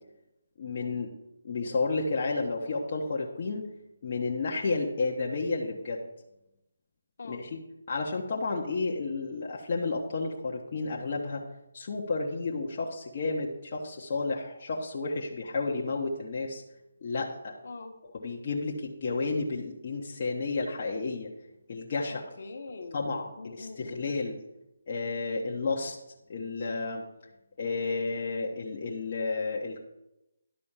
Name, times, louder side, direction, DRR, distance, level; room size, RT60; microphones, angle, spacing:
voice 1, 0.6-1.1 1.4-3.6 4.0-6.0 7.3-7.5 7.9-11.4 11.7-16.6 17.0-17.5 18.1-21.3 21.7-22.2 22.9-24.4 24.9-26.0 26.3-27.0 27.6-29.8, left 3 dB, 40° left, -3 dB, 1.1 m, -31 dB
voice 2, 22.1-24.1 26.6-26.7, left 3 dB, 55° left, 3 dB, 1.3 m, -44 dB
11.5 x 4.2 x 7.3 m, 0.90 s
figure-of-eight pair, 165°, 0 cm